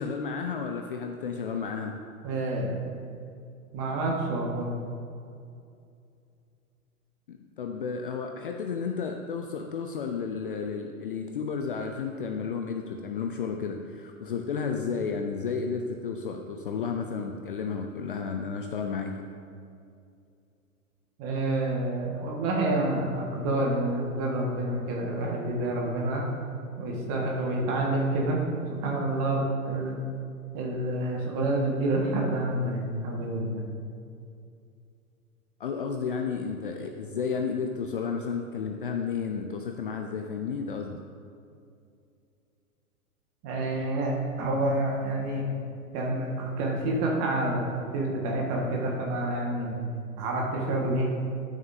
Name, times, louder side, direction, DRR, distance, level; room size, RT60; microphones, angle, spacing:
voice 1, 0.0-2.0 7.3-19.1 35.6-41.0, left 5 dB, 40° left, 4 dB, 0.5 m, -32 dB
voice 2, 2.2-2.8 3.7-4.7 21.2-26.2 26.8-28.4 28.7-30.0 30.5-33.6 43.4-45.4 45.9-49.7 50.2-51.1, right 2 dB, 30° right, -2 dB, 1.6 m, -28 dB
12.0 x 6.3 x 2.7 m, 2.5 s
figure-of-eight pair, 105°, 44 cm